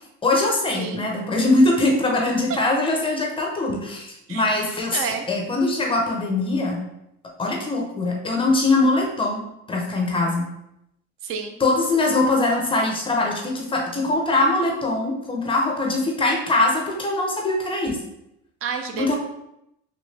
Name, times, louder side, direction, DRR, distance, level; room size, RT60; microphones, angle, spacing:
voice 1, 0.2-6.8 7.4-9.4 9.7-10.5 11.6-18.0 18.9-19.2, left 2 dB, 15° left, 0 dB, 0.7 m, -22 dB
voice 2, 0.8-1.1 2.3-2.4 4.3-4.4 4.9-5.3 11.2-11.5 18.6-19.2, right 6 dB, 45° right, 6 dB, 0.5 m, -29 dB
3.2 x 2.5 x 3.2 m, 0.82 s
supercardioid pair, 115°, 32 cm